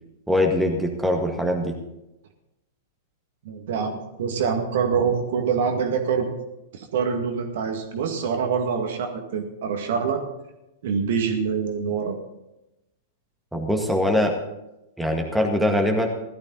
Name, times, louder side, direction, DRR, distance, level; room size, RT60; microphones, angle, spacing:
voice 1, 0.3-1.8 13.5-14.4 15.0-16.1, left 1 dB, ahead, 1 dB, 1.9 m, -22 dB
voice 2, 3.4-6.3 6.7-10.2 10.8-12.2, right 6 dB, 55° right, 5 dB, 2.0 m, -25 dB
16.5 x 13.0 x 4.1 m, 0.92 s
figure-of-eight pair, 100°, 0 cm